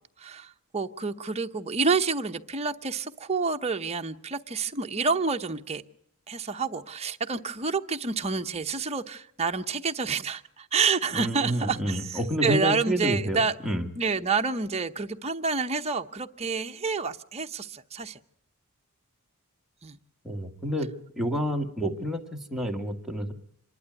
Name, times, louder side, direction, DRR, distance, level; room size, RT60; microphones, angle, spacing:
voice 1, 0.2-5.8 6.3-13.6 14.0-18.2 19.8-20.0, right 4 dB, 30° right, 0.8 m, -28 dB
voice 2, 11.1-13.9 20.2-20.9 21.2-23.3, equal, ahead, 1.7 m, -29 dB
26.5 x 12.0 x 9.5 m
head